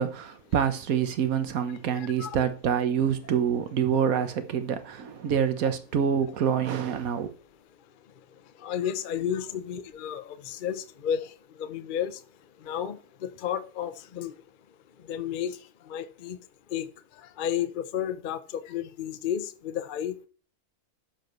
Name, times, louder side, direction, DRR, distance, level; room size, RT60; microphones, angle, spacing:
voice 1, 0.0-7.3, right 8 dB, 70° right, 1.4 m, -26 dB
voice 2, 1.9-2.4 8.6-11.3 11.6-12.2 12.6-14.3 15.1-15.6 15.9-16.4 16.7-16.9 17.4-20.3, left 9 dB, 50° left, 0.6 m, -32 dB
12.0 x 7.4 x 3.1 m
omnidirectional pair, 1.6 m